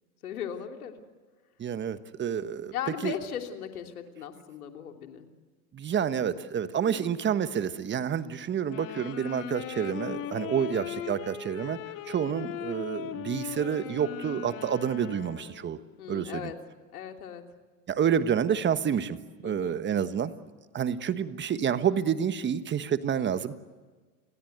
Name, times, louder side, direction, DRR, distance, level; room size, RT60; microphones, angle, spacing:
voice 1, 0.2-0.9 2.7-5.3 6.8-7.1 10.6-10.9 16.0-16.6 16.9-17.4 19.4-19.8, left 9 dB, 90° left, 5 dB, 3.2 m, -38 dB
voice 2, 1.6-2.7 3.0-3.1 5.7-11.8 12.1-15.8 16.1-16.5 17.9-20.3 20.7-23.7, right 8 dB, 25° right, 12 dB, 1.3 m, -29 dB
sound 1, 8.7-15.7, left 10 dB, 50° left, 2.4 m, -39 dB
30.0 x 21.5 x 8.1 m, 1.4 s
hypercardioid pair, 115°, 43 cm